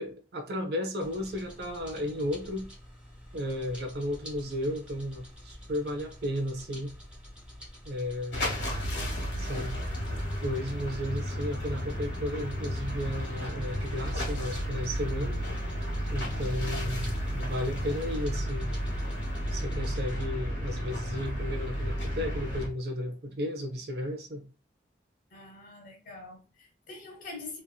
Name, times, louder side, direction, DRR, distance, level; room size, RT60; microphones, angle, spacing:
voice 1, 0.0-2.7 3.3-6.9 7.8-8.7 9.4-9.7 10.4-15.4 16.1-18.7 19.5-24.5, left 1 dB, 55° right, 0.6 m, -34 dB
sound 1, 1.0-20.3, equal, 5° right, 1.2 m, -48 dB
sound 2, 8.3-22.7, equal, 85° left, 1.5 m, -33 dB
voice 2, 25.3-27.6, left 3 dB, 45° left, 1.0 m, -45 dB
3.1 x 2.7 x 2.2 m
head